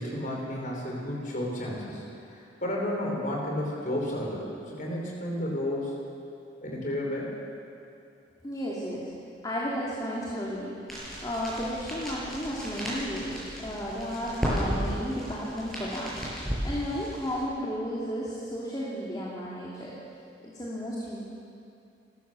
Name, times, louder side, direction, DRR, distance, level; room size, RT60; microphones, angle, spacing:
voice 1, 0.0-6.0 6.6-7.4, left 1 dB, 45° left, -2 dB, 5.2 m, -32 dB
voice 2, 8.4-9.1 9.4-10.7 11.2-16.1 16.6-19.9 20.4-21.3, equal, 20° left, -5 dB, 2.8 m, -33 dB
sound 1, 10.9-17.4, equal, ahead, 7.0 m, -34 dB
29.5 x 13.5 x 7.1 m, 2.6 s
head